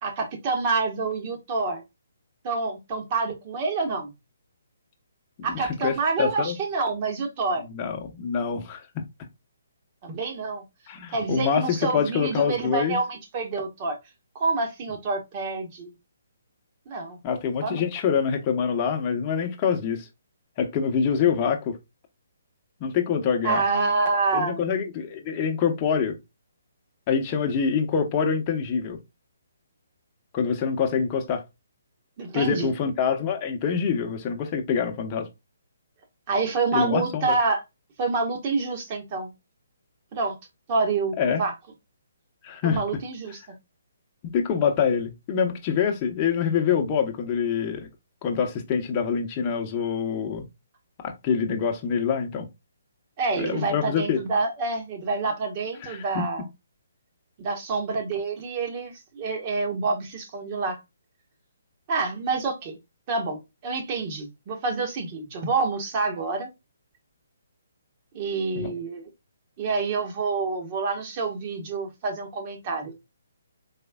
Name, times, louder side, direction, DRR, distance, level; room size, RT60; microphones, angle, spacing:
voice 1, 0.0-1.8 2.4-4.1 5.4-7.6 10.0-10.6 11.1-14.0 14.3-15.9 16.9-17.2 17.6-17.8 23.4-24.6 32.2-32.7 36.3-37.6 38.0-39.3 40.1-40.4 40.7-41.5 42.6-43.6 53.2-56.4 57.4-60.8 61.9-62.8 63.1-66.5 68.1-69.1 69.6-72.9, right 3 dB, 35° right, 1.2 m, -27 dB
voice 2, 5.4-6.6 7.7-8.8 10.9-13.0 17.2-20.1 20.6-21.8 22.8-23.6 24.3-26.2 27.1-29.0 30.3-31.4 32.3-35.3 36.7-37.4 41.2-41.4 42.4-42.8 44.2-47.9 48.2-50.5 51.0-52.5 53.4-54.2 55.8-56.2 68.5-68.7, left 6 dB, 30° left, 0.8 m, -25 dB
4.2 x 3.1 x 2.2 m
figure-of-eight pair, 140°, 0 cm